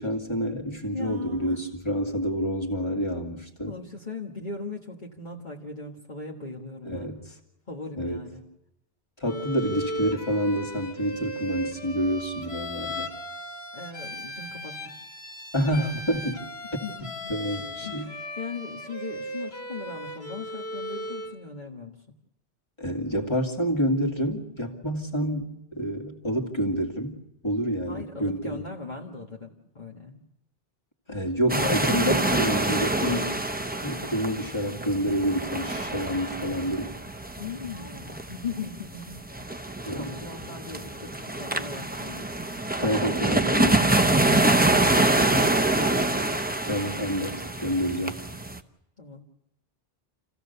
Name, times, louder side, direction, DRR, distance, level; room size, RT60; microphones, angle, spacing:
voice 1, 0.0-3.7 6.8-7.2 8.0-8.2 9.2-13.1 15.5-16.5 16.7-16.8 17.3-18.1 22.8-28.6 31.1-33.5 33.8-37.0 39.9-40.2 42.8-43.9 46.6-48.2, equal, 25° left, 1 dB, 2.5 m, -28 dB
voice 2, 0.9-1.6 3.7-7.1 7.7-8.5 9.6-10.0 13.7-14.9 16.6-22.1 27.9-30.3 31.1-31.3 37.4-42.3 44.7-46.2 49.0-49.2, left 4 dB, 45° left, -2 dB, 1.8 m, -39 dB
Bowed string instrument, 9.3-21.4, equal, 70° left, 2.0 m, -37 dB
sound 1, 31.5-48.6, right 2 dB, 10° right, 0.8 m, -26 dB
28.0 x 16.5 x 6.8 m, 0.88 s
omnidirectional pair, 1.1 m